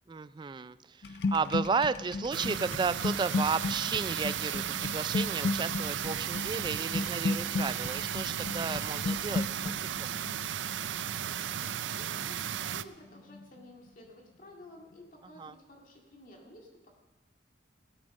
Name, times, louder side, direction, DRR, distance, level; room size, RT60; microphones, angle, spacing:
voice 1, 0.1-10.1 15.4-15.5, right 4 dB, 25° right, 15 dB, 0.3 m, -33 dB
sound 1, 1.0-12.9 13.2-13.6, left 3 dB, 60° left, 0.4 m, -35 dB
sound 2, 2.3-12.8, right 10 dB, 90° right, 0.4 m, -35 dB
voice 2, 11.1-16.9, left 1 dB, 45° left, 0 dB, 2.1 m, -53 dB
17.0 x 9.0 x 5.3 m, 1.2 s
head